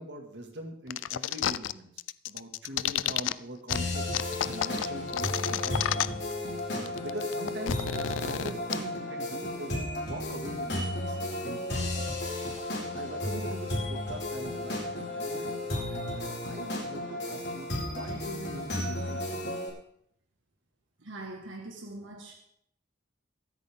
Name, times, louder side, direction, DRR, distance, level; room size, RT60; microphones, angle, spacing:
voice 1, 0.0-4.1 4.5-6.1 6.7-11.8 12.9-15.6 15.9-19.2, right 1 dB, 60° right, 3 dB, 2.1 m, -42 dB
sound 1, 0.9-1.7 2.0-3.3 3.7-3.8 4.1-6.3 6.6-6.7 6.9-8.7, left 11 dB, 90° left, 0.4 m, -30 dB
sound 2, 3.7-19.7, left 1 dB, 60° left, 4.7 m, -33 dB
voice 2, 21.0-22.3, right 2 dB, 90° right, 1 dB, 1.7 m, -42 dB
23.5 x 8.3 x 3.7 m, 0.70 s
head